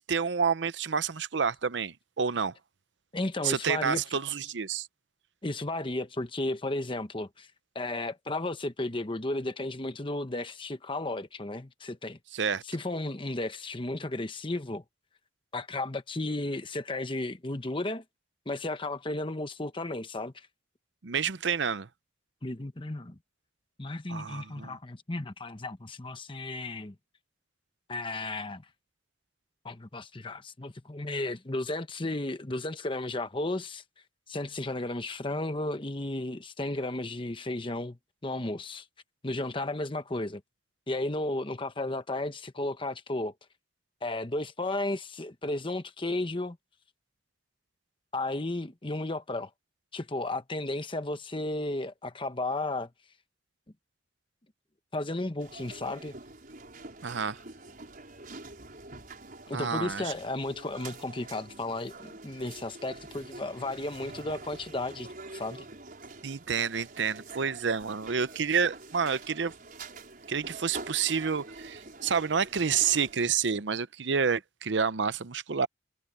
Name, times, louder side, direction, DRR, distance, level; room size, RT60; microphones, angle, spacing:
voice 1, 0.1-2.5 3.4-4.9 12.3-12.6 21.0-21.9 24.1-24.7 57.0-57.4 59.5-60.0 66.2-69.5 70.3-75.7, right 6 dB, 70° right, 0.7 m, -29 dB
voice 2, 3.1-4.0 5.4-7.5 7.7-12.2 12.6-14.8 15.5-18.0 18.5-20.5 22.4-23.2 23.8-26.9 27.9-28.6 29.6-33.8 34.3-38.8 39.2-40.4 40.9-43.3 44.0-46.6 48.1-49.5 49.9-52.9 54.9-56.2 59.5-65.7, left 2 dB, 25° left, 1.1 m, -34 dB
sound 1, 55.4-73.3, right 3 dB, 50° right, 5.6 m, -46 dB
head